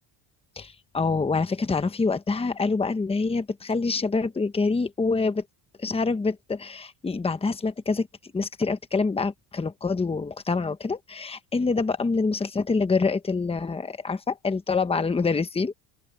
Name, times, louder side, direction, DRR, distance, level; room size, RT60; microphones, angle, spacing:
voice 1, 0.6-5.4 5.8-15.7, left 4 dB, 10° left, 1.1 m, -26 dB
open air
cardioid pair, 140°, 47 cm